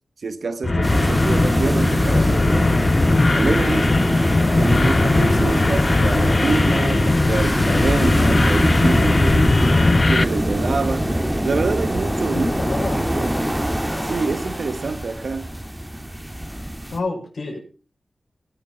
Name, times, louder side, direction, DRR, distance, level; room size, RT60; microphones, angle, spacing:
voice 1, 0.2-2.9 3.3-3.9 4.6-11.1 11.4-12.5 12.9-13.3 14.0-15.5, right 4 dB, 75° right, 1.4 m, -26 dB
sound 1, 0.6-10.2, left 3 dB, 40° left, 0.7 m, -19 dB
sound 2, 0.8-17.0, right 1 dB, 10° right, 2.3 m, -23 dB
voice 2, 9.5-9.9 12.3-13.1 16.9-17.6, left 3 dB, 75° left, 6.4 m, -28 dB
20.5 x 7.4 x 5.8 m
wide cardioid pair, 80°, 0 cm